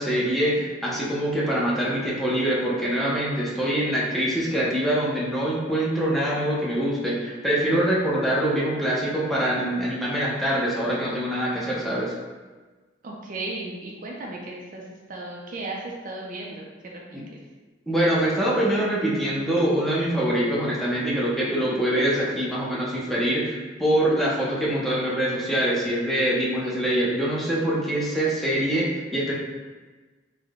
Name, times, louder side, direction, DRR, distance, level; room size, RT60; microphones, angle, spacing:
voice 1, 0.0-12.1 17.1-17.2 17.9-29.3, right 1 dB, ahead, -6 dB, 0.6 m, -24 dB
voice 2, 13.0-17.2, right 2 dB, 45° right, -1 dB, 0.4 m, -35 dB
3.6 x 2.1 x 3.5 m, 1.3 s
head